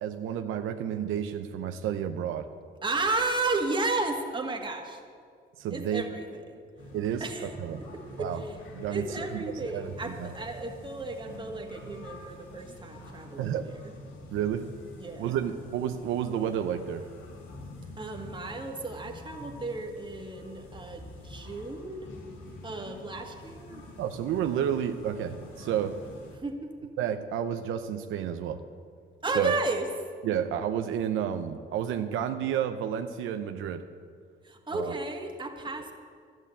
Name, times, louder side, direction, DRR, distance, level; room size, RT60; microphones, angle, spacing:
voice 1, 0.0-2.5 5.6-6.0 6.9-7.2 7.6-7.8 8.2-8.4 8.7-9.1 9.6-10.3 13.4-13.7 14.3-14.7 15.2-17.1 24.0-26.0 27.0-28.6 29.3-29.5 30.2-33.9 34.7-34.9, right 9 dB, 85° right, 7 dB, 0.7 m, -30 dB
voice 2, 2.8-5.0 5.7-6.6 7.2-7.5 7.8-8.6 8.9-13.9 15.0-15.4 18.0-22.1 22.6-23.8 26.4-26.9 29.2-29.9 34.4-35.9, right 3 dB, 25° right, 2 dB, 1.9 m, -33 dB
sound 1, 6.8-26.4, left 1 dB, 90° left, 2.0 m, -47 dB
12.0 x 9.3 x 8.3 m, 2.1 s
cardioid pair, 90°, 20 cm